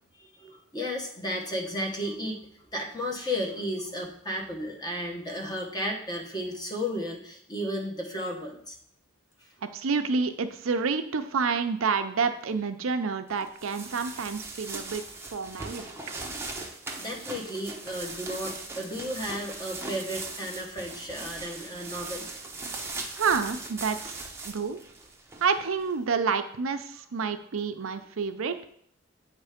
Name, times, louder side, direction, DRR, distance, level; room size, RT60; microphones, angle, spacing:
voice 1, 0.2-2.5 2.7-8.7 17.0-22.3, equal, 20° left, 0 dB, 1.2 m, -33 dB
voice 2, 9.7-15.0 15.3-15.9 23.2-24.1 24.4-24.8 25.4-28.6, right 5 dB, 80° right, 9 dB, 0.6 m, -28 dB
sound 1, 13.4-25.9, right 3 dB, 10° right, 0.7 m, -39 dB
8.3 x 3.3 x 5.0 m, 0.65 s
head